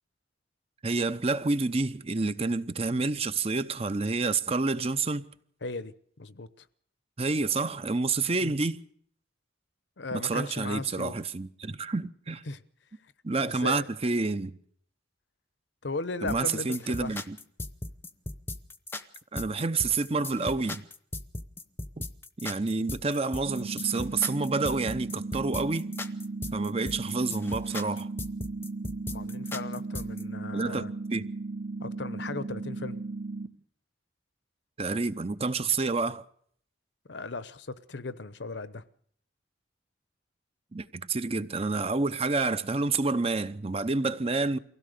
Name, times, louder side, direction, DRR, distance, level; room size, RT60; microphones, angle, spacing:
voice 1, 0.8-5.2 7.2-8.8 10.1-12.4 13.2-14.6 16.2-17.4 19.3-20.8 22.4-25.9 26.5-28.1 30.5-30.8 31.1-31.2 34.8-36.2 40.7-44.6, right 3 dB, 30° right, 0.7 m, -28 dB
voice 2, 5.6-6.7 8.4-8.5 10.0-11.2 12.5-12.6 13.4-13.9 15.8-17.1 29.1-30.9 31.8-33.0 37.1-38.8, left 3 dB, 65° left, 0.9 m, -37 dB
sound 1, 16.3-30.2, left 2 dB, 10° left, 0.8 m, -38 dB
sound 2, 23.5-33.5, right 3 dB, 60° right, 1.3 m, -36 dB
24.0 x 16.5 x 6.7 m
head